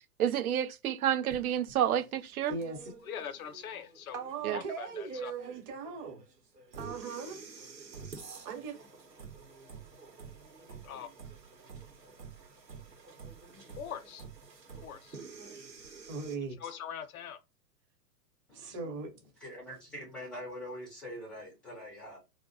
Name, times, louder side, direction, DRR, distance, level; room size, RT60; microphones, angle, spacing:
voice 1, 0.2-2.5 4.4-4.6, right 10 dB, 65° right, 0.5 m, -29 dB
sound 1, 1.3-16.4, right 5 dB, 90° right, 0.9 m, -49 dB
voice 2, 2.5-2.9 4.1-6.2 6.8-7.4 8.4-8.8 16.1-16.7 18.5-19.1, right 4 dB, 30° right, 0.9 m, -39 dB
voice 3, 3.0-4.2 4.5-5.3 10.8-11.1 13.8-14.2 14.7-15.2 16.6-17.4, left 8 dB, 60° left, 0.6 m, -42 dB
voice 4, 18.5-18.9 19.4-22.2, equal, ahead, 0.4 m, -44 dB
2.5 x 2.1 x 3.9 m
figure-of-eight pair, 105°, 48 cm